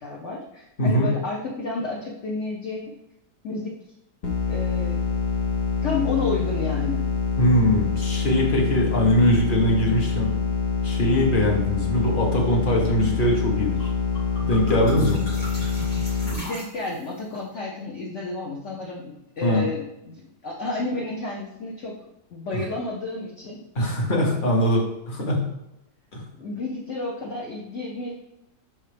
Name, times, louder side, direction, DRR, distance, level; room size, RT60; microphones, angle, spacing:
voice 1, 0.0-2.9 3.4-3.7 4.5-5.0 5.8-7.0 16.2-21.9 22.3-23.6 26.4-28.2, left 3 dB, 50° left, -2 dB, 1.2 m, -31 dB
voice 2, 0.8-1.1 7.4-10.3 10.8-13.9 14.5-15.2 19.4-19.6 23.7-25.5 26.1-26.2, equal, 30° left, 0 dB, 1.4 m, -21 dB
sound 1, 4.2-16.3, left 6 dB, 90° left, 0.4 m, -25 dB
sound 2, 13.8-13.9 14.2-17.2, right 1 dB, 65° left, 3.1 m, -38 dB
6.2 x 5.5 x 3.4 m, 0.87 s
omnidirectional pair, 1.8 m